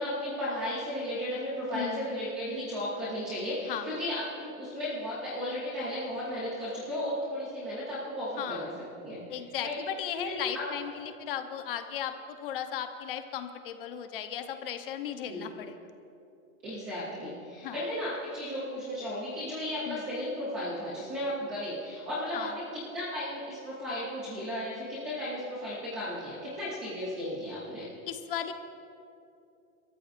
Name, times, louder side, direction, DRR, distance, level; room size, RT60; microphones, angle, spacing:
voice 1, 0.0-8.7 9.0-9.8 10.1-10.9 15.3-15.5 16.6-27.9, left 1 dB, 5° right, -9 dB, 0.4 m, -35 dB
voice 2, 1.7-2.1 3.7-4.0 8.4-8.7 9.3-15.9 17.6-17.8 19.9-20.0 22.3-22.5 28.1-28.5, left 9 dB, 40° left, 8 dB, 0.8 m, -36 dB
29.5 x 13.5 x 2.5 m, 2.6 s
supercardioid pair, 175°, 42 cm